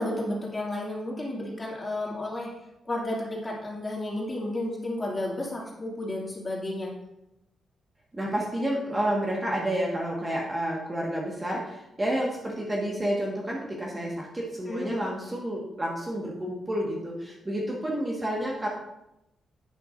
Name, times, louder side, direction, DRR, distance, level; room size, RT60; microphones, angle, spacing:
voice 1, 0.0-2.5 2.8-6.9 8.8-9.0 14.7-15.0, left 1 dB, 20° left, -3 dB, 2.4 m, -32 dB
voice 2, 8.1-18.7, right 1 dB, 20° right, -3 dB, 1.6 m, -30 dB
11.0 x 8.9 x 2.6 m, 0.88 s
cardioid pair, 130°, 0 cm